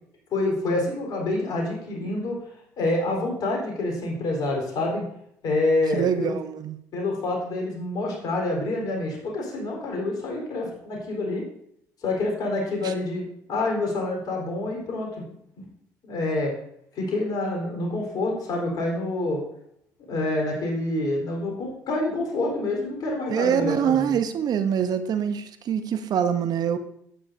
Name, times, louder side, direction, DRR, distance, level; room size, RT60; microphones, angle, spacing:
voice 1, 0.3-2.4 2.8-5.1 5.4-6.3 6.9-11.4 12.0-13.2 13.5-15.2 15.6-15.7 16.0-16.5 16.9-19.4 20.1-24.2, left 2 dB, 55° left, 0 dB, 4.0 m, -27 dB
voice 2, 5.9-6.8 12.8-12.9 23.3-26.8, right 8 dB, 50° right, 10 dB, 0.8 m, -24 dB
12.0 x 8.8 x 2.7 m, 0.71 s
hypercardioid pair, 55°, 8 cm